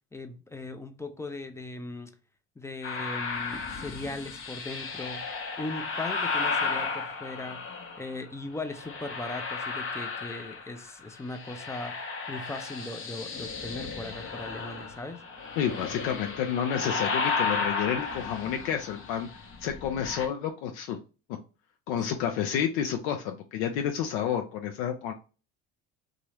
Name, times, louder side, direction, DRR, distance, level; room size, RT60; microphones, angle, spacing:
voice 1, 0.1-2.1 2.6-5.3 5.6-7.6 8.0-12.0 12.3-15.2, left 2 dB, 10° left, 0.4 m, -38 dB
sound 1, 2.8-8.2 8.7-10.9 11.2-20.3, left 4 dB, 35° left, 0.7 m, -34 dB
voice 2, 15.6-19.3 19.6-21.0 21.9-25.1, left 8 dB, 80° left, 0.6 m, -30 dB
2.8 x 2.4 x 3.1 m
supercardioid pair, 95°, 35 cm